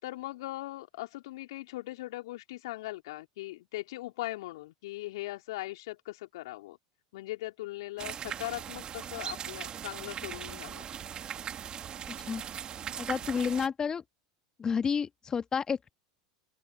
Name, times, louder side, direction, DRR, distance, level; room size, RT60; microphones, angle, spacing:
voice 1, 0.0-6.8 7.1-10.9, left 18 dB, 70° left, 3.9 m, -40 dB
sound 1, 8.0-13.7, right 9 dB, 35° right, 1.9 m, -39 dB
voice 2, 12.1-12.4 13.0-14.0 14.6-15.9, left 6 dB, 25° left, 1.9 m, -30 dB
open air
hypercardioid pair, 85°, 3 cm